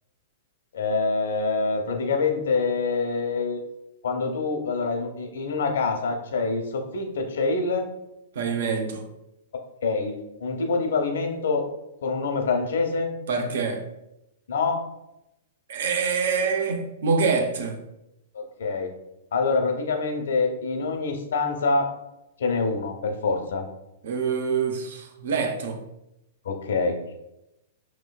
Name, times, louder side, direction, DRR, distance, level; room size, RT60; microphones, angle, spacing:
voice 1, 0.7-3.6 4.0-7.9 9.8-11.6 12.0-13.1 14.5-14.8 18.3-18.9 19.3-21.9 22.4-23.7 26.4-27.0, left 4 dB, 85° left, 0.8 m, -25 dB
voice 2, 8.3-9.1 13.3-13.9 15.7-17.8 24.0-25.8, right 5 dB, 70° right, 0.6 m, -25 dB
6.1 x 3.0 x 2.3 m
supercardioid pair, 170°, 0 cm